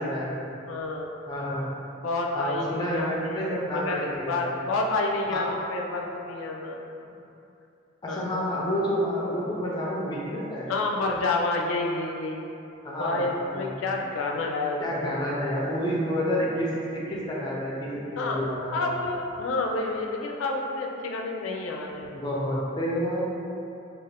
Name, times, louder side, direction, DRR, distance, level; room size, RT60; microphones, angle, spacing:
voice 1, 0.0-0.5 1.3-1.7 2.3-4.6 5.3-5.5 8.0-10.7 12.8-14.0 14.8-18.9 22.1-23.2, equal, 20° left, -5 dB, 0.4 m, -29 dB
voice 2, 0.7-1.1 2.0-3.4 3.7-6.8 8.1-8.3 10.7-12.4 13.0-15.1 18.2-18.4 18.7-22.1, left 2 dB, 80° left, 0 dB, 0.3 m, -29 dB
2.4 x 2.4 x 3.3 m, 2.7 s
head